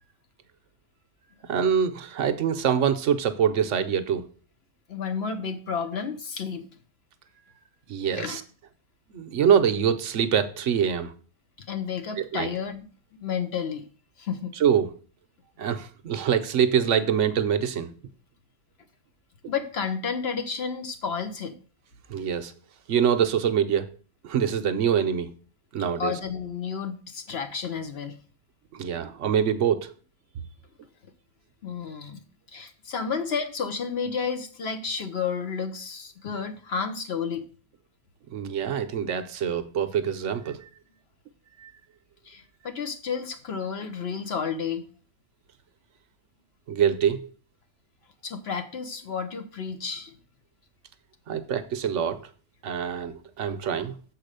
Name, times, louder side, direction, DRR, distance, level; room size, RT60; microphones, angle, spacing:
voice 1, 1.5-4.3 7.9-8.4 9.1-11.1 12.2-12.5 14.6-14.9 15.6-17.9 22.1-22.5 22.9-23.9 24.2-25.3 25.7-26.1 28.7-29.9 38.3-40.7 41.6-41.7 46.7-47.3 51.3-52.3 52.6-53.9, right 8 dB, 60° right, 0.9 m, -24 dB
voice 2, 4.9-6.7 8.2-8.4 11.7-12.9 13.2-13.9 14.2-14.5 19.5-21.6 26.0-28.2 31.6-32.2 32.5-37.5 42.2-44.8 48.2-50.2, left 6 dB, 50° left, 0.9 m, -31 dB
7.3 x 4.8 x 6.5 m
omnidirectional pair, 1.7 m